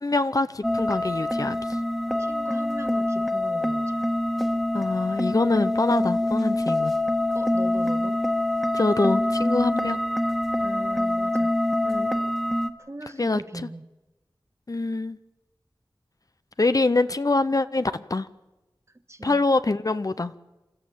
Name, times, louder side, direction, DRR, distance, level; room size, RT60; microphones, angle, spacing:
voice 1, 0.0-1.6 4.7-6.9 8.7-10.0 11.8-12.1 13.1-13.7 14.7-15.2 16.6-18.3 19.2-20.3, left 3 dB, 45° left, 0.7 m, -24 dB
sound 1, 0.6-12.7, left 1 dB, 5° left, 1.6 m, -25 dB
voice 2, 2.2-3.9 7.3-8.2 10.6-11.5 12.9-13.8 19.1-19.4, right 2 dB, 35° right, 1.6 m, -39 dB
28.0 x 13.0 x 8.6 m
wide cardioid pair, 55°, 8 cm